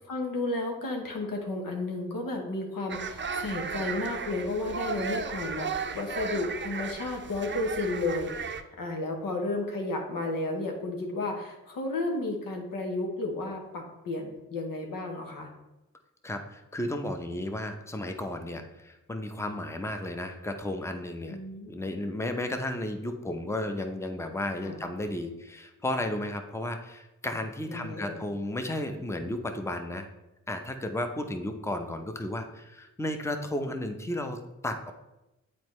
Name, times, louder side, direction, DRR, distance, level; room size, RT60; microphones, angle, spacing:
voice 1, 0.1-15.5 21.3-21.7 24.6-24.8 27.7-28.2, left 2 dB, 85° left, 2 dB, 1.0 m, -32 dB
sound 1, 2.9-8.6, right 5 dB, 35° right, 0.5 m, -35 dB
voice 2, 16.2-21.4 21.7-30.1 30.5-34.9, left 1 dB, 10° left, 6 dB, 0.7 m, -33 dB
7.7 x 4.4 x 3.1 m, 0.97 s
cardioid pair, 45°, 33 cm